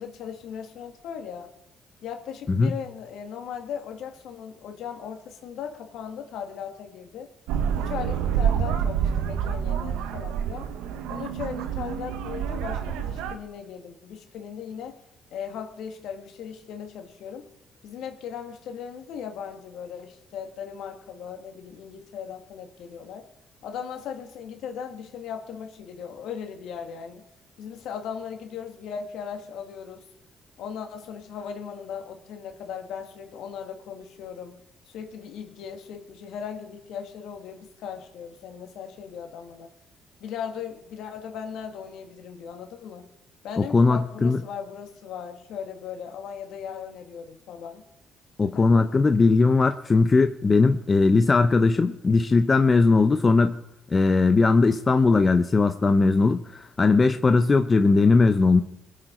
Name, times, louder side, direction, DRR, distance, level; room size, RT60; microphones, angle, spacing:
voice 1, 0.0-1.5 2.0-7.3 7.8-10.7 11.1-15.0 15.3-17.5 17.8-23.3 23.6-27.2 27.6-30.1 30.6-34.6 34.9-39.7 40.2-43.1 43.4-47.8 48.4-48.9, left 7 dB, 75° left, 5 dB, 2.0 m, -38 dB
sound 1, 7.5-13.4, right 8 dB, 80° right, 1.1 m, -27 dB
voice 2, 43.6-44.4 48.4-53.6 53.9-58.6, left 3 dB, 35° left, 7 dB, 1.0 m, -19 dB
22.0 x 8.2 x 4.5 m, 0.85 s
hypercardioid pair, 55°, 0 cm